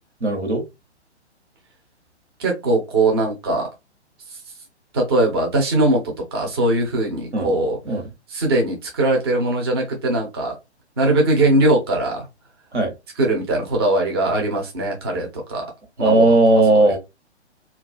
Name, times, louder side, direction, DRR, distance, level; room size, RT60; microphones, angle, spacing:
voice 1, 0.2-0.6 7.3-7.5 7.8-8.1 12.7-12.9 16.0-17.0, right 2 dB, 75° right, 1.0 m, -16 dB
voice 2, 2.4-3.7 4.9-7.8 8.3-10.6 11.0-12.3 13.2-15.6 16.0-16.2, right 2 dB, 20° right, 0.5 m, -20 dB
2.3 x 2.3 x 2.5 m
figure-of-eight pair, 130°, 35 cm